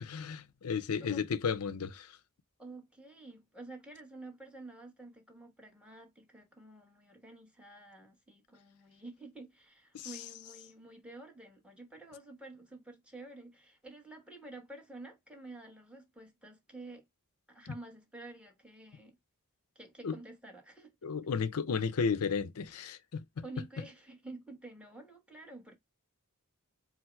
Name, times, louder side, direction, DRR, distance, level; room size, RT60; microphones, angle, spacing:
voice 1, 0.0-2.2 9.9-10.1 17.7-17.8 20.0-20.2 21.0-23.2, left 5 dB, 85° left, 0.5 m, -33 dB
voice 2, 2.6-17.1 17.5-19.2 19.7-20.9 23.4-25.7, right 2 dB, 5° right, 1.1 m, -50 dB
4.5 x 2.0 x 4.4 m
head